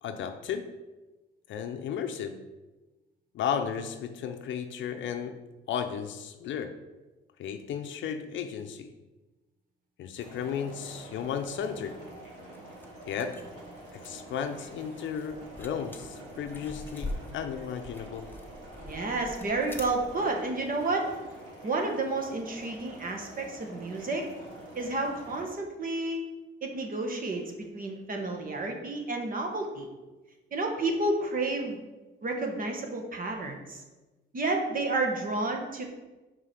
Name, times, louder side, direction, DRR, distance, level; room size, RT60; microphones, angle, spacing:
voice 1, 0.0-0.7 1.5-2.4 3.3-5.4 5.7-6.8 7.4-8.9 10.0-12.0 13.1-13.4 13.9-18.3, left 7 dB, 75° left, 7 dB, 0.6 m, -34 dB
sound 1, 10.2-25.4, right 1 dB, 90° right, 2.0 m, -47 dB
sound 2, 12.5-20.3, left 1 dB, 10° left, 0.8 m, -44 dB
voice 2, 18.8-21.1 21.6-24.3 24.7-26.3 26.6-29.9 30.5-31.8 32.2-33.8 34.3-35.8, right 2 dB, 45° right, 2 dB, 1.3 m, -31 dB
4.8 x 4.8 x 5.9 m, 1.1 s
cardioid pair, 90°, 20 cm